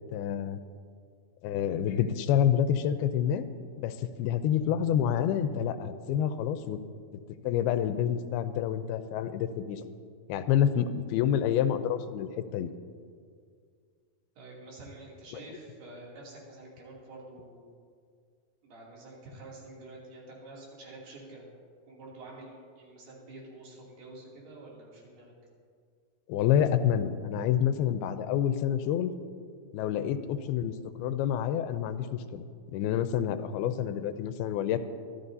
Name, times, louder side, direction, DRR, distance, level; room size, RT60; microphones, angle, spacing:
voice 1, 0.1-0.6 1.4-3.5 3.8-6.8 7.1-9.8 10.3-12.7 26.3-29.1 29.7-32.4 32.7-34.8, left 9 dB, 90° left, 10 dB, 2.5 m, -28 dB
voice 2, 14.4-17.8 18.6-21.5 21.9-25.3, right 2 dB, 85° right, -4 dB, 4.8 m, -48 dB
24.0 x 13.0 x 2.7 m, 2.1 s
omnidirectional pair, 4.4 m